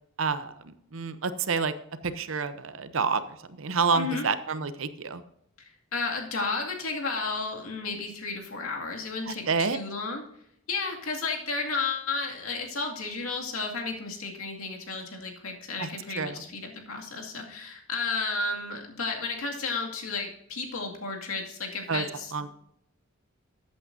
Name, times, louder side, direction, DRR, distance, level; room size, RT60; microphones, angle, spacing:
voice 1, 0.2-1.7 2.0-3.2 3.5-5.2 9.3-9.8 15.8-15.9 16.1-16.4 21.9-22.0 22.3-22.5, right 5 dB, 65° right, 12 dB, 0.7 m, -28 dB
voice 2, 3.9-4.3 5.6-10.2 10.7-22.5, left 4 dB, 90° left, 1 dB, 2.3 m, -33 dB
14.5 x 8.5 x 2.7 m, 0.74 s
head